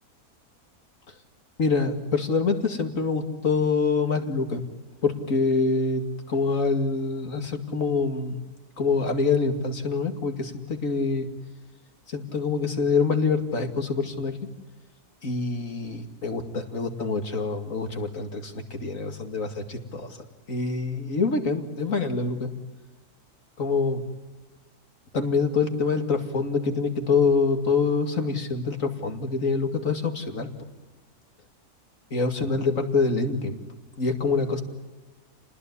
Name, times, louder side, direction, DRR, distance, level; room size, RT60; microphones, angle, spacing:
voice 1, 1.6-4.6 5.0-6.0 6.3-8.4 8.8-11.3 12.1-14.4 15.2-20.2 20.5-22.5 23.6-24.0 25.1-30.5 32.1-33.6 34.0-34.6, left 4 dB, 60° left, 6 dB, 2.7 m, -25 dB
29.5 x 20.5 x 9.8 m, 1.3 s
omnidirectional pair, 1.6 m